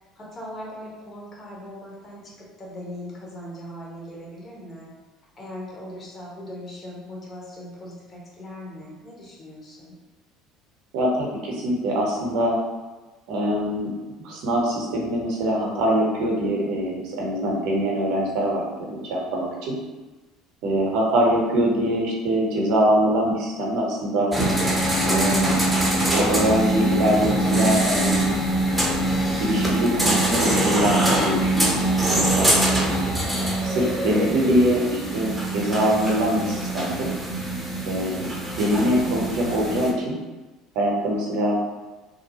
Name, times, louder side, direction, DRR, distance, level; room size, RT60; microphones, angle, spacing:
voice 1, 0.0-2.3 2.6-4.9 5.4-9.9, left 1 dB, 35° left, -4 dB, 1.0 m, -39 dB
voice 2, 10.9-12.6 13.3-13.9 14.2-19.8 20.6-24.3 25.0-25.6 26.1-28.3 29.4-32.5 33.4-37.1 37.9-38.3 38.6-40.2 40.7-41.6, equal, 60° right, -2 dB, 0.7 m, -23 dB
sound 1, 24.3-39.9, right 1 dB, 5° right, 0.6 m, -23 dB
2.7 x 2.1 x 2.8 m, 1.2 s
figure-of-eight pair, 65°, 0 cm